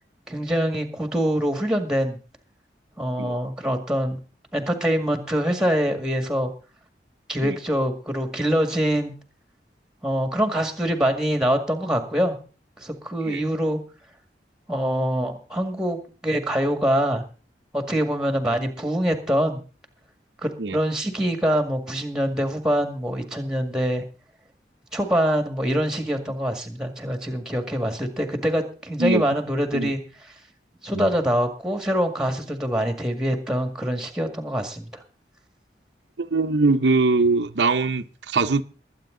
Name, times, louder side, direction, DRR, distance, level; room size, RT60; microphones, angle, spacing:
voice 1, 0.3-2.2 3.0-4.2 4.5-6.5 7.3-9.1 10.0-12.4 12.8-13.8 14.7-17.2 17.7-19.6 20.4-24.0 24.9-30.0 30.8-35.0, equal, 5° right, 1.9 m, -24 dB
voice 2, 36.2-38.6, right 3 dB, 90° right, 0.8 m, -22 dB
21.5 x 8.7 x 3.8 m
head